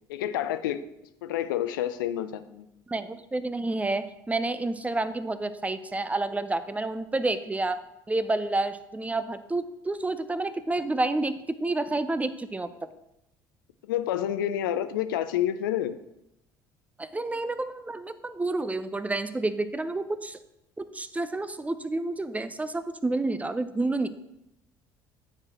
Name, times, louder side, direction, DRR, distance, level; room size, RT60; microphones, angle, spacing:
voice 1, 0.1-0.9 1.2-2.7 13.9-16.0, left 11 dB, 75° left, 11 dB, 0.5 m, -28 dB
voice 2, 2.9-7.8 8.1-12.7 17.0-20.4 20.8-24.1, right 2 dB, 15° right, 12 dB, 0.6 m, -29 dB
9.6 x 4.7 x 4.3 m, 0.87 s
figure-of-eight pair, 60°, 11 cm